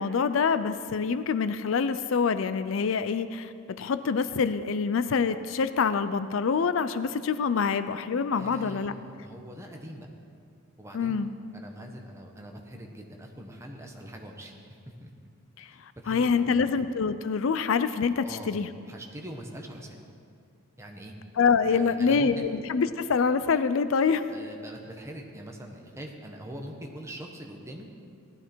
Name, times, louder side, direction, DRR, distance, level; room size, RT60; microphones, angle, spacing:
voice 1, 0.0-8.9 10.9-11.3 15.6-15.7 16.1-18.7 21.4-24.3, left 5 dB, 65° left, 13 dB, 0.4 m, -26 dB
voice 2, 8.4-10.1 10.8-11.2 11.5-15.1 16.0-16.7 18.2-18.6 18.9-20.0 20.8-21.1 21.6-22.5 24.3-27.9, equal, 15° right, 1 dB, 1.2 m, -43 dB
17.0 x 12.5 x 4.5 m, 2.4 s
head